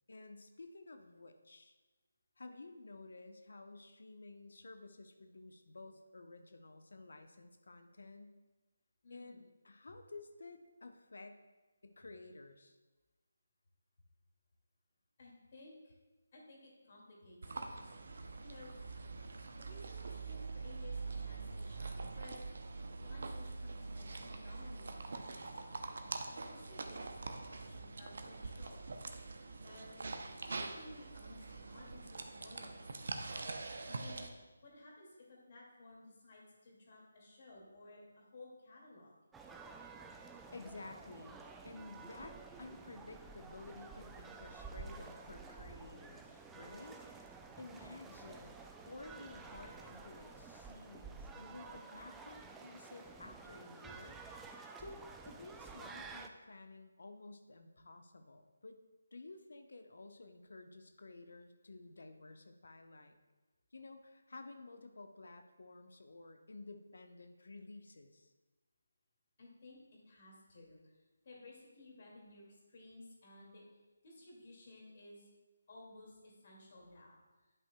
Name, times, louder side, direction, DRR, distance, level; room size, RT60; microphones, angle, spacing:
voice 1, 0.1-1.8 2.4-8.4 9.1-11.4 11.8-12.8 40.5-54.2 54.8-58.8 59.1-63.1 63.7-68.3, left 3 dB, 65° left, 6 dB, 0.8 m, -53 dB
voice 2, 9.0-9.4 15.2-16.0 16.3-18.0 18.4-18.7 19.6-22.4 23.0-25.5 26.3-28.8 29.6-30.0 30.5-33.0 33.9-34.3 34.6-39.1 47.5-47.6 69.4-69.8 70.0-73.6 74.0-75.3 75.7-77.2, left 2 dB, 45° left, -2 dB, 2.3 m, -56 dB
sound 1, 17.4-34.3, right 3 dB, 60° right, 0.6 m, -44 dB
sound 2, 39.3-56.3, right 4 dB, 5° right, 0.3 m, -51 dB
10.5 x 5.5 x 2.3 m, 1.2 s
figure-of-eight pair, 155°, 0 cm